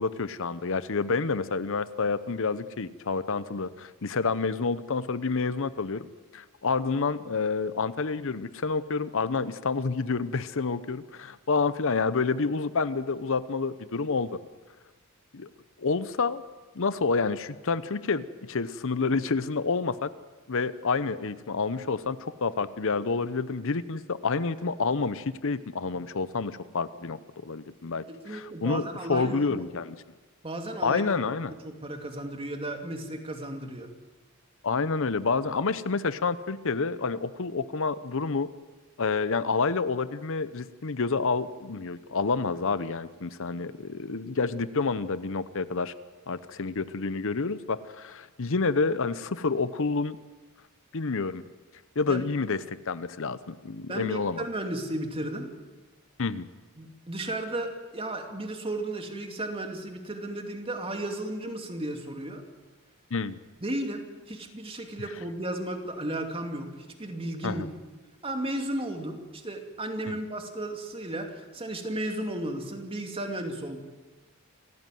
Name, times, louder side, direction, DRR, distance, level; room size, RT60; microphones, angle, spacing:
voice 1, 0.0-6.1 6.3-14.4 15.3-15.5 15.8-16.4 16.7-20.1 20.5-30.0 30.8-31.5 34.6-38.5 39.0-45.9 46.3-50.2 50.9-51.4 52.0-54.4 56.2-56.5 63.1-63.4 67.4-67.7 70.1-70.2, left 4 dB, 65° left, 14 dB, 0.8 m, -28 dB
voice 2, 28.1-29.6 30.4-31.0 31.6-33.9 52.1-52.2 53.9-55.5 56.8-62.4 63.6-67.6 68.2-73.8, right 1 dB, 25° right, 4 dB, 2.6 m, -34 dB
28.0 x 15.0 x 9.2 m, 1.2 s
head